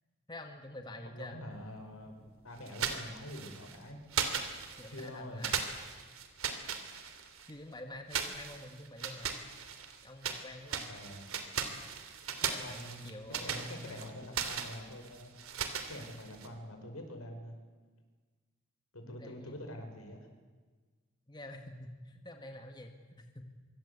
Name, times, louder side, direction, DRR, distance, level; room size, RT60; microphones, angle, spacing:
voice 1, 0.3-1.4 4.7-5.6 7.5-9.4 10.0-11.0 12.4-14.1 19.0-19.6 21.3-23.4, left 1 dB, 20° left, 4 dB, 1.9 m, -47 dB
voice 2, 1.0-4.0 4.9-5.4 10.9-11.2 12.6-15.4 15.9-17.6 18.9-20.3, left 1 dB, 85° left, 5 dB, 5.5 m, -46 dB
sound 1, 2.7-3.8 4.1-5.1 5.4-7.5 8.1-10.4 10.7-16.5, right 7 dB, 80° right, 2.9 m, -38 dB
25.0 x 24.0 x 8.3 m, 1.4 s
head